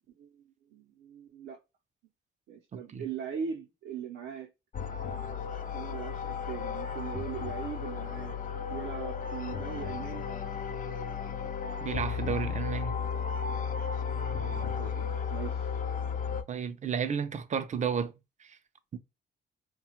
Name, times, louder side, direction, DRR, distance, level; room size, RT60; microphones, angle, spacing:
voice 1, 0.2-1.6 2.5-4.5 5.7-8.4 8.7-10.3 11.6-11.7 14.2-15.7, right 8 dB, 80° right, 0.7 m, -40 dB
voice 2, 2.7-3.0 11.8-13.0 16.5-18.1 18.4-18.6 18.9-19.0, right 7 dB, 40° right, 0.5 m, -32 dB
sound 1, 4.7-16.4, left 6 dB, 45° left, 0.5 m, -34 dB
2.7 x 2.3 x 2.8 m
cardioid pair, 90°, 20 cm